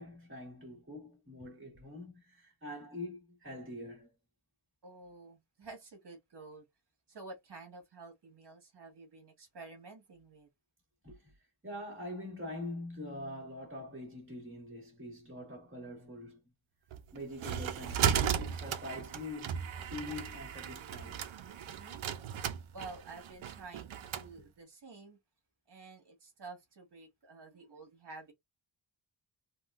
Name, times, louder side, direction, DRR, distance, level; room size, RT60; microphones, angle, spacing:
voice 1, 0.0-4.1 11.0-11.2 11.6-16.4 17.1-19.6 19.9-21.2, left 1 dB, 25° right, 1.7 m, -44 dB
voice 2, 4.8-6.6 7.1-10.5 21.7-22.0 22.7-25.2 25.7-28.3, right 3 dB, 55° right, 1.4 m, -50 dB
sound 1, 16.9-24.3, right 8 dB, 80° right, 0.6 m, -35 dB
3.7 x 2.3 x 2.4 m
wide cardioid pair, 160°, 47 cm